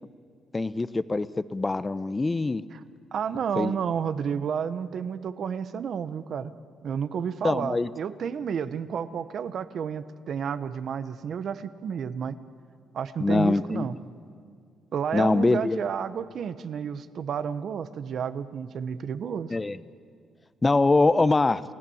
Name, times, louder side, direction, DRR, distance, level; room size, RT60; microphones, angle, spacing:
voice 1, 0.5-2.6 3.6-3.7 7.4-7.9 13.2-13.9 15.1-15.8 19.5-19.8 20.6-21.6, left 3 dB, 25° left, 15 dB, 0.8 m, -23 dB
voice 2, 3.1-6.5 6.8-12.4 12.9-14.0 14.9-19.5, right 7 dB, 60° right, 13 dB, 1.0 m, -31 dB
29.5 x 16.5 x 7.2 m, 2.3 s
cardioid pair, 90°, 0 cm